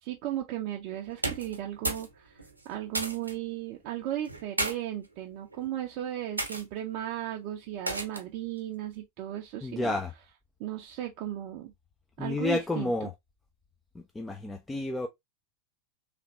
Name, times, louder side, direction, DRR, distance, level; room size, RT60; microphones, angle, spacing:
voice 1, 0.0-2.4 2.6-10.0 10.6-11.7 12.2-13.1, right 12 dB, 45° right, 0.6 m, -36 dB
sound 1, 1.1-2.1 2.4-3.3 4.2-4.7 5.5-5.8 6.4-6.6 7.9-8.3, right 2 dB, 80° right, 0.9 m, -33 dB
voice 2, 9.6-10.1 12.2-13.1 13.9-15.1, left 2 dB, 10° left, 0.5 m, -31 dB
3.4 x 2.5 x 3.0 m
figure-of-eight pair, 90°, 0 cm